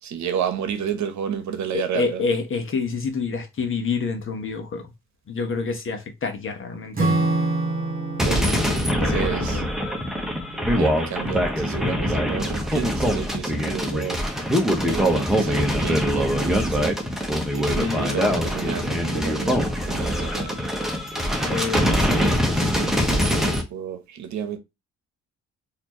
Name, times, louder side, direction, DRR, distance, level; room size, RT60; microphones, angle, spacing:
voice 1, 0.0-2.2 8.2-8.5 8.7-9.6 10.7-14.2 14.8-16.9 17.5-20.6 21.4-24.6, right 8 dB, 70° right, 1.0 m, -31 dB
voice 2, 1.7-4.9 5.3-7.1 8.2-9.7 17.8-18.3 21.5-21.8, left 4 dB, 45° left, 1.1 m, -28 dB
Acoustic guitar / Strum, 6.9-11.7, right 2 dB, 30° right, 1.8 m, -28 dB
sound 1, 8.2-23.6, equal, ahead, 1.1 m, -23 dB
4.3 x 2.8 x 3.0 m
cardioid pair, 90°, 30 cm